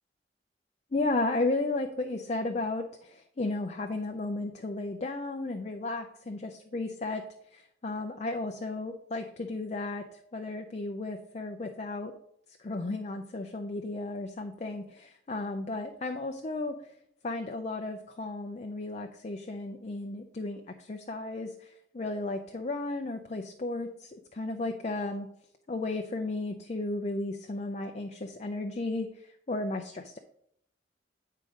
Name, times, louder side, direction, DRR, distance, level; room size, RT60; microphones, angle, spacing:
voice 1, 0.9-7.2 7.5-12.1 12.6-16.9 17.2-25.3 25.7-30.2, left 2 dB, 40° left, 5 dB, 0.5 m, -34 dB
9.4 x 3.7 x 5.1 m, 0.72 s
head